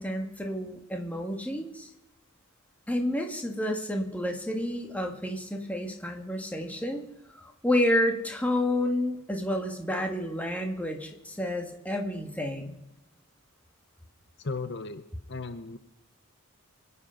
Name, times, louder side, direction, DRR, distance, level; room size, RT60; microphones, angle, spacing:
voice 1, 0.0-1.9 2.9-7.0 7.3-12.8, left 1 dB, 5° left, 2 dB, 1.8 m, -30 dB
voice 2, 14.4-15.8, left 3 dB, 55° left, 10 dB, 0.8 m, -36 dB
25.5 x 8.5 x 5.7 m, 0.93 s
head